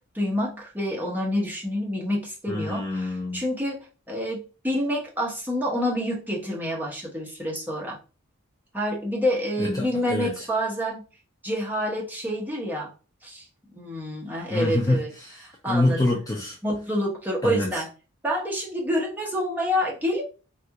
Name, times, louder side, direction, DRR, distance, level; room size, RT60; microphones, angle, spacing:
voice 1, 0.1-8.0 8.7-11.0 11.4-12.9 13.2-13.4 13.7-15.1 15.6-16.1 16.6-17.9 18.2-20.2, equal, 10° right, -4 dB, 0.8 m, -27 dB
voice 2, 2.5-3.4 9.6-10.5 14.5-16.6 17.4-17.8, left 2 dB, 15° left, -1 dB, 0.4 m, -26 dB
3.3 x 2.4 x 2.8 m, 0.35 s
head